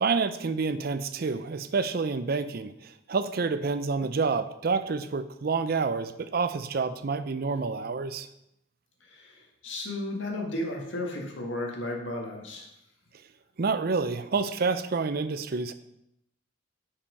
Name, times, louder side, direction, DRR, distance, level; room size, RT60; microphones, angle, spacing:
voice 1, 0.0-2.7 3.1-8.3 13.6-15.7, right 4 dB, 50° right, 11 dB, 0.5 m, -28 dB
voice 2, 9.0-12.7, left 1 dB, 70° left, 1 dB, 1.7 m, -34 dB
6.7 x 5.8 x 5.4 m, 0.80 s
head